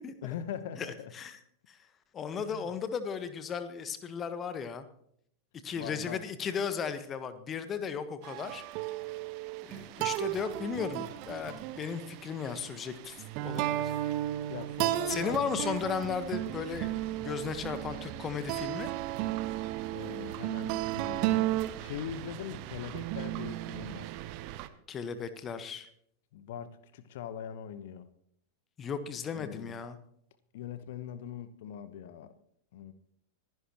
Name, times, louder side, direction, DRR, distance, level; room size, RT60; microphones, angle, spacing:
voice 1, 0.2-1.1 2.3-2.7 5.7-6.3 14.5-15.7 19.9-24.1 26.3-28.1 29.3-29.7 30.5-32.3 32.7-32.9, left 9 dB, 55° left, 1.1 m, -42 dB
voice 2, 0.8-1.4 1.7-1.8 2.1-4.8 5.6-8.6 9.6-13.9 15.1-16.9 17.2-18.9 24.9-25.9 28.8-30.0, left 6 dB, 25° left, 1.3 m, -35 dB
sound 1, 8.2-24.7, right 14 dB, 45° right, 0.9 m, -34 dB
25.5 x 10.5 x 3.0 m
figure-of-eight pair, 90°, 0 cm